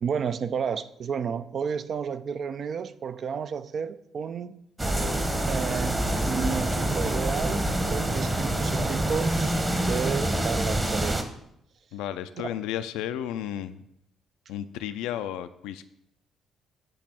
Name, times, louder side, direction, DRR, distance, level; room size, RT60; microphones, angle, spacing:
voice 1, 0.0-4.6 5.5-11.3 12.4-12.5, right 6 dB, 50° right, 12 dB, 0.4 m, -32 dB
sound 1, 4.8-11.2, right 1 dB, 20° right, 1.1 m, -26 dB
voice 2, 11.9-13.8 14.5-15.8, left 11 dB, 70° left, 11 dB, 0.4 m, -33 dB
7.8 x 3.2 x 6.2 m, 0.78 s
hypercardioid pair, 45°, 0 cm